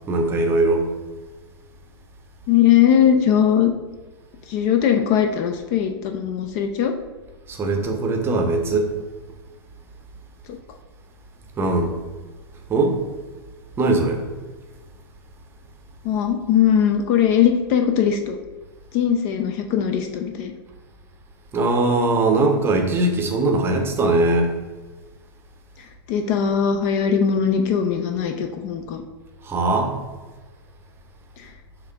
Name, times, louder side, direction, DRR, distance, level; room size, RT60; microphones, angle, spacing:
voice 1, 0.1-0.9 7.5-8.9 11.6-11.9 12.7-13.0 13.8-14.2 21.5-24.5 29.4-29.9, right 2 dB, 15° right, 3 dB, 0.7 m, -20 dB
voice 2, 2.5-3.7 4.5-6.9 10.5-10.6 16.0-18.4 18.9-20.5 26.1-29.0 31.4-31.5, left 8 dB, 35° left, 5 dB, 0.4 m, -20 dB
6.5 x 2.5 x 3.3 m, 1.3 s
figure-of-eight pair, 100°, 13 cm